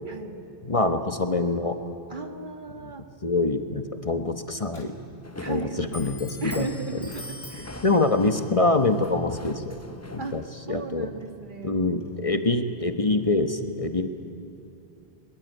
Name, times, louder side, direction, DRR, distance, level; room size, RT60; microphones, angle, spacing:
voice 1, 0.1-0.4 2.1-3.0 5.4-6.0 6.4-8.0 10.2-10.4 10.7-11.8, right 4 dB, 55° right, 6 dB, 1.8 m, -36 dB
voice 2, 0.6-1.8 2.8-2.9 3.2-4.9 5.5-6.7 6.9-7.0 7.8-9.7 10.1-10.4 10.7-11.1 11.6-14.1, left 2 dB, 35° left, 7 dB, 1.2 m, -25 dB
Clock, 4.1-13.4, left 1 dB, 80° left, 2.6 m, -47 dB
sound 1, 5.2-10.5, left 2 dB, 15° left, 0.8 m, -42 dB
22.0 x 22.0 x 9.1 m, 2.9 s
omnidirectional pair, 1.0 m